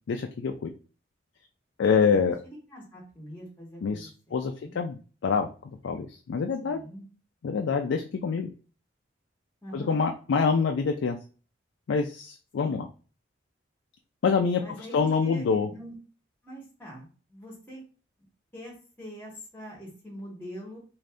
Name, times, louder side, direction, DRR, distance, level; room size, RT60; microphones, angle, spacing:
voice 1, 0.1-0.7 1.8-2.4 3.8-5.5 5.8-6.8 7.4-8.5 9.7-11.2 11.9-12.8 14.2-14.6 14.9-15.7, left 5 dB, 75° left, 4 dB, 0.3 m, -26 dB
voice 2, 1.9-4.8 6.6-7.0 9.6-10.0 12.6-12.7 14.6-16.0 16.4-17.8 18.5-20.8, equal, 10° left, -3 dB, 1.0 m, -44 dB
2.6 x 2.5 x 3.3 m, 0.37 s
head